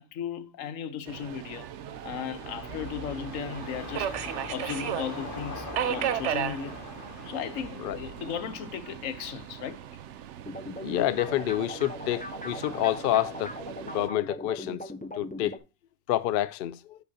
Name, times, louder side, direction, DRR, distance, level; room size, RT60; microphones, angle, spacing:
voice 1, 0.0-1.7 2.0-4.2 4.5-6.8 7.2-9.8, left 8 dB, 85° left, 1.2 m, -36 dB
Subway metro underground, 1.1-14.1, right 10 dB, 70° right, 0.9 m, -37 dB
sound 1, 1.4-9.8 10.2-10.3, left 2 dB, 40° left, 2.0 m, -43 dB
sound 2, 10.4-15.6, left 2 dB, 15° left, 0.3 m, -39 dB
voice 2, 10.8-13.5 13.8-14.8 15.2-15.6 16.1-17.0, left 13 dB, 65° left, 0.6 m, -28 dB
9.4 x 5.7 x 2.7 m
omnidirectional pair, 1.3 m